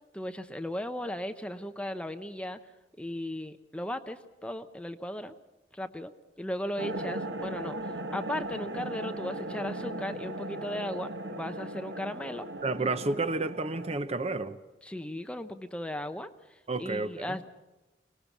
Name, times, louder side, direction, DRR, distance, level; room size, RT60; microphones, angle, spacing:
voice 1, 0.1-2.6 3.0-5.3 5.7-6.1 6.4-12.5 14.8-16.3 16.8-17.4, left 1 dB, 5° left, 8 dB, 0.7 m, -36 dB
sound 1, 6.8-14.0, right 1 dB, 75° right, 1.5 m, -37 dB
voice 2, 12.6-14.6 16.7-17.4, right 3 dB, 35° right, 11 dB, 0.8 m, -31 dB
24.0 x 19.5 x 7.2 m, 1.1 s
head